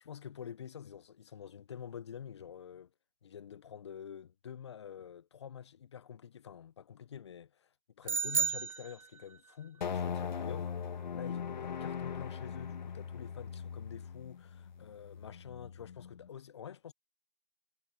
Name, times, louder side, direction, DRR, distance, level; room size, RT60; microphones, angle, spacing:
voice 1, 0.1-2.9 3.2-7.7 8.0-10.7 11.1-16.9, left 8 dB, 30° left, 0.8 m, -47 dB
sound 1, 8.1-9.5, right 6 dB, 35° right, 0.4 m, -33 dB
sound 2, 9.8-16.3, left 7 dB, 50° left, 2.0 m, -40 dB
figure-of-eight pair, 155°, 30 cm